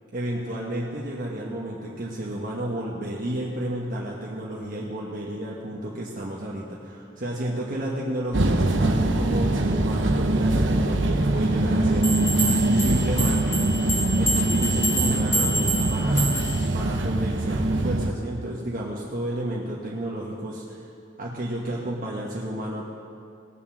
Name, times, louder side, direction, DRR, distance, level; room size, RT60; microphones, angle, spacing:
voice 1, 0.1-12.2 12.6-13.7 14.2-16.3 16.7-20.9 21.2-22.9, right 1 dB, 45° right, -4 dB, 1.3 m, -31 dB
sound 1, 8.3-18.1, right 2 dB, 75° right, 0.9 m, -23 dB
sound 2, 12.0-16.7, right 1 dB, 15° left, 3.0 m, -27 dB
19.0 x 7.5 x 6.3 m, 2.4 s
head